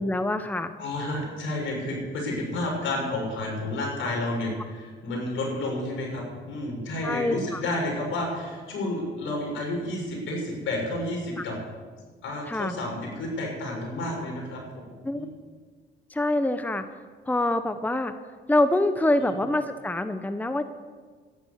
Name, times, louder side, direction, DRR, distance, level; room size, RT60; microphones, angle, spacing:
voice 1, 0.0-0.7 7.0-7.6 11.4-11.5 12.5-12.7 15.0-15.3 16.1-16.8 17.2-18.1 18.5-20.6, left 1 dB, 10° left, 10 dB, 0.9 m, -25 dB
voice 2, 0.8-11.5 12.2-15.3 19.2-19.3, left 1 dB, 75° left, -1 dB, 6.6 m, -31 dB
13.0 x 11.5 x 8.6 m, 1.5 s
cardioid pair, 90°, 20 cm